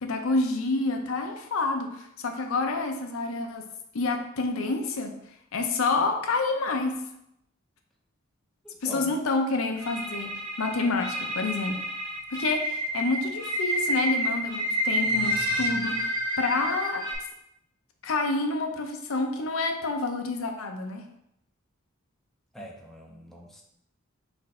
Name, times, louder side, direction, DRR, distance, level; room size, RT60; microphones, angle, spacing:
voice 1, 0.0-3.7 3.9-5.1 5.5-7.0 8.8-11.8 12.3-16.1 16.4-17.0 18.0-21.0, left 3 dB, 80° left, 4 dB, 0.6 m, -28 dB
voice 2, 8.6-9.1 22.5-23.6, equal, ahead, -1 dB, 0.5 m, -42 dB
sound 1, 9.8-17.1, equal, 25° right, 1.3 m, -29 dB
4.1 x 2.6 x 4.2 m, 0.78 s
head